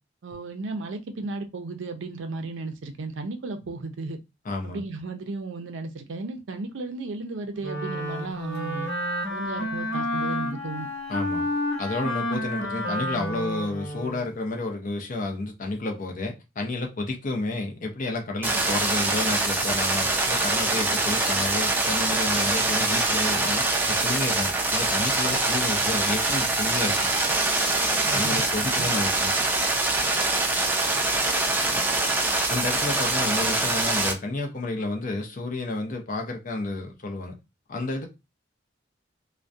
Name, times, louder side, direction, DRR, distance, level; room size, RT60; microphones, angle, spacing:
voice 1, 0.2-4.2 4.6-8.9 9.3-10.9 28.0-28.4, right 3 dB, 90° right, 0.5 m, -34 dB
voice 2, 4.4-4.8 11.1-11.5 11.8-27.1 28.1-29.3 31.7-31.8 32.5-37.3 37.7-38.1, left 2 dB, 45° left, 0.6 m, -31 dB
Wind instrument woodwind instrument, 7.6-14.3, left 1 dB, 85° left, 1.0 m, -30 dB
sound 1, 18.4-34.1, right 2 dB, 10° right, 0.4 m, -24 dB
2.3 x 2.2 x 2.5 m
head